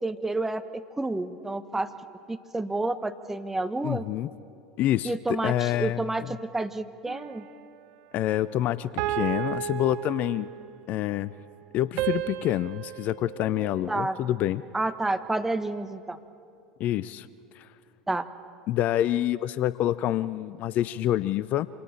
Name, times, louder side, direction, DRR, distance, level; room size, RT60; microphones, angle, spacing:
voice 1, 0.0-1.9 2.3-4.0 5.0-7.5 13.9-14.2 14.7-16.2 18.1-18.3, right 2 dB, 10° right, 9 dB, 1.1 m, -30 dB
voice 2, 3.8-4.3 4.8-5.1 5.4-6.0 8.1-10.5 10.9-11.3 11.7-14.6 16.8-17.3 17.5-17.7 18.7-21.7, left 13 dB, 45° left, 18 dB, 0.5 m, -27 dB
sound 1, 7.1-7.8 9.0-10.8 12.0-14.4, right 13 dB, 55° right, 1.0 m, -34 dB
27.0 x 26.5 x 4.3 m, 2.5 s
figure-of-eight pair, 75°, 4 cm